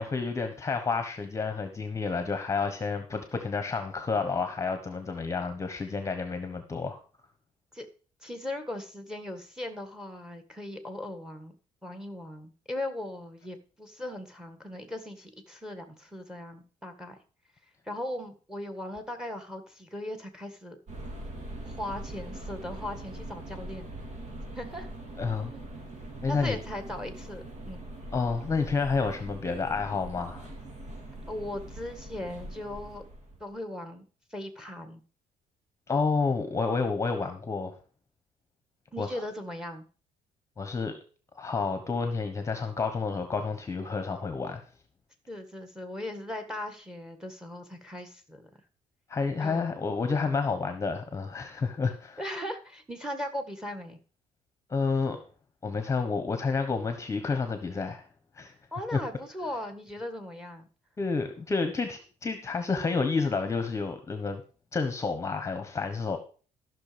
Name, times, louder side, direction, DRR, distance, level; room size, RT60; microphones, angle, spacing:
voice 1, 0.0-7.0 25.2-25.5 26.2-26.6 28.1-30.5 35.9-37.7 39.0-39.2 40.6-40.9 41.3-44.6 49.1-52.2 54.7-55.2 55.6-58.1 58.3-58.5 58.9-59.0 61.0-64.4 64.7-66.2, left 4 dB, 20° left, 8 dB, 1.2 m, -30 dB
voice 2, 8.2-11.5 11.8-17.2 17.9-20.8 21.6-23.9 24.6-24.9 25.5-25.6 26.3-27.8 31.3-33.0 33.4-35.0 38.9-39.9 45.3-48.5 49.4-49.8 52.2-54.0 58.7-60.7, left 1 dB, 5° right, 7 dB, 1.8 m, -38 dB
sound 1, 20.9-33.5, right 1 dB, 60° right, 3.7 m, -42 dB
14.0 x 6.2 x 5.1 m, 0.38 s
cardioid pair, 135°, 14 cm